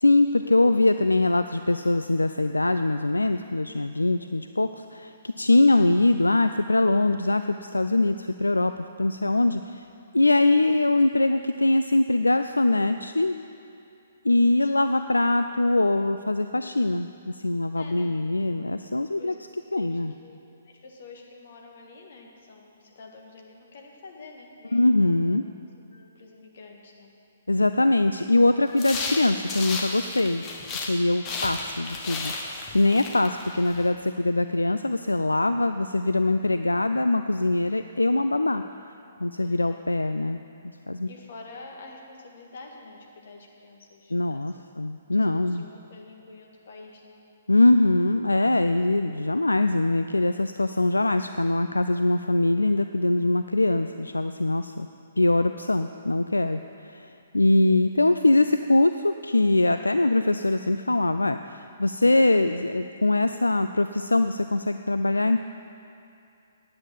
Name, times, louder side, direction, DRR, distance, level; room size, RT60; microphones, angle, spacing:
voice 1, 0.0-9.8 10.1-13.3 14.2-17.1 17.3-19.3 19.7-20.1 24.7-25.4 27.5-30.4 30.7-38.6 39.2-40.4 40.9-41.1 44.1-45.6 47.5-54.9 55.2-65.4, left 2 dB, 80° left, 9 dB, 0.3 m, -22 dB
voice 2, 17.7-18.2 19.2-19.4 19.7-20.4 20.6-25.4 25.9-27.1 31.1-31.5 33.3-33.4 39.4-39.8 41.1-44.7 45.1-47.2, left 3 dB, 50° left, 1 dB, 1.7 m, -48 dB
sound 1, 28.7-31.0 31.2-33.8, left 3 dB, 25° left, 1.2 m, -33 dB
9.5 x 8.6 x 7.2 m, 2.6 s
figure-of-eight pair, 125°, 0 cm